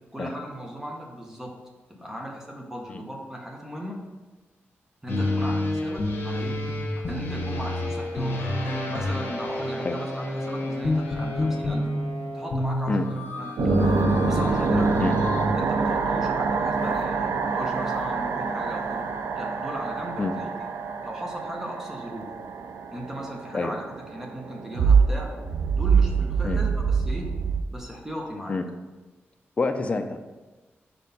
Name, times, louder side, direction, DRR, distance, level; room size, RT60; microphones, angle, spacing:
voice 1, 0.1-1.6 1.9-4.0 5.0-6.6 7.0-8.4 8.9-11.9 12.3-13.8 14.3-15.2 15.5-19.1 19.4-20.5 21.0-22.3 22.9-23.8 24.1-25.4 25.7-27.3 27.7-28.6, equal, 10° right, 0 dB, 0.8 m, -37 dB
sound 1, 5.1-15.5, left 1 dB, 55° left, 1.2 m, -28 dB
sound 2, 13.6-27.6, right 5 dB, 85° right, 0.4 m, -25 dB
voice 2, 29.6-30.2, left 3 dB, 30° left, 6 dB, 0.4 m, -27 dB
4.5 x 4.3 x 5.3 m, 1.2 s
wide cardioid pair, 145°, 4 cm